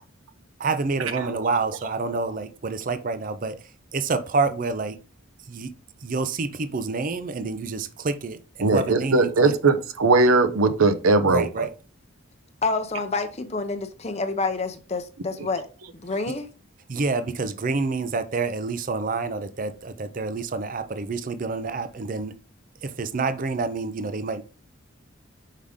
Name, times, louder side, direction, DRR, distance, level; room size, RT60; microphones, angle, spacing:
voice 1, 0.6-3.6 3.9-5.0 5.5-5.7 6.0-9.5 11.3-11.7 16.9-22.3 22.8-24.4, right 4 dB, 40° right, 0.5 m, -28 dB
voice 2, 8.6-11.7, right 3 dB, 85° right, 0.7 m, -19 dB
voice 3, 12.6-15.7 15.9-16.5, left 3 dB, 30° left, 0.6 m, -28 dB
5.6 x 4.9 x 3.6 m
head